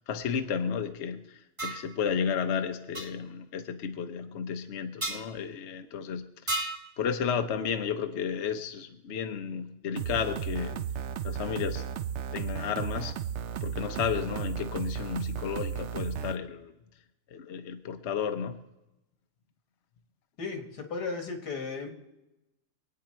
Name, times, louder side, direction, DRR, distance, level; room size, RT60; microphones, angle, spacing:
voice 1, 0.0-6.3 7.0-11.9 12.3-13.2 13.6-16.7 17.3-18.6, left 7 dB, 50° left, 7 dB, 1.0 m, -33 dB
sound 1, 1.6-1.9 2.9-3.1 5.0-5.2 6.5-6.9, right 2 dB, 20° right, 1.3 m, -32 dB
sound 2, 10.0-16.3, right 9 dB, 60° right, 0.7 m, -34 dB
voice 2, 20.4-21.9, left 4 dB, 85° left, 4 dB, 2.4 m, -35 dB
24.5 x 9.1 x 4.4 m, 0.95 s
omnidirectional pair, 1.7 m